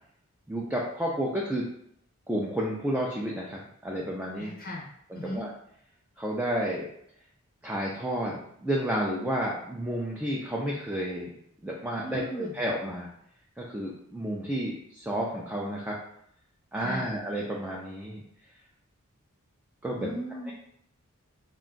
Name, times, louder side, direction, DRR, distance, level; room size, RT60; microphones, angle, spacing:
voice 1, 0.5-1.7 2.3-4.5 5.1-5.5 6.2-6.9 7.6-11.3 11.6-13.1 13.6-16.0 16.7-18.2 19.8-20.1, right 1 dB, 5° right, -3 dB, 0.3 m, -31 dB
voice 2, 4.4-4.9 5.1-5.4 12.0-12.6 16.8-17.1 20.0-20.5, equal, 40° left, -1 dB, 0.5 m, -37 dB
2.4 x 2.2 x 3.7 m, 0.71 s
head